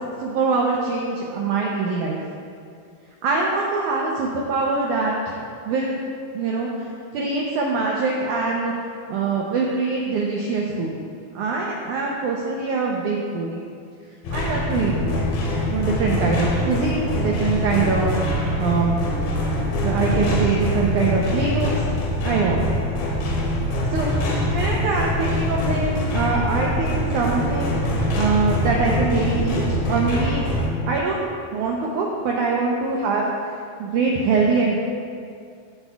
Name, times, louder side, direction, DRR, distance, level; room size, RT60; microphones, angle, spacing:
voice 1, 0.2-2.2 3.2-5.4 5.7-6.0 6.3-8.7 9.1-10.9 11.3-13.6 14.3-15.2 15.7-18.1 18.6-18.9 19.8-21.8 22.2-22.6 23.9-30.5 30.9-33.3 33.8-34.7, right 4 dB, 90° right, -2 dB, 1.7 m, -23 dB
sound 1, 14.2-30.7, left 1 dB, 75° left, 3.2 m, -23 dB
15.0 x 8.1 x 2.3 m, 2.3 s
omnidirectional pair, 4.5 m